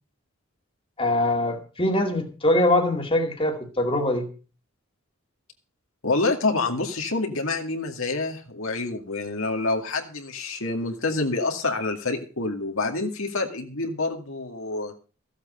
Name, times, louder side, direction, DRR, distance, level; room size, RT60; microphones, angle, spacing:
voice 1, 1.0-4.3, left 1 dB, 25° left, 3 dB, 2.1 m, -23 dB
voice 2, 6.0-14.9, left 3 dB, 70° left, 2 dB, 2.2 m, -27 dB
15.0 x 8.0 x 6.5 m, 0.37 s
head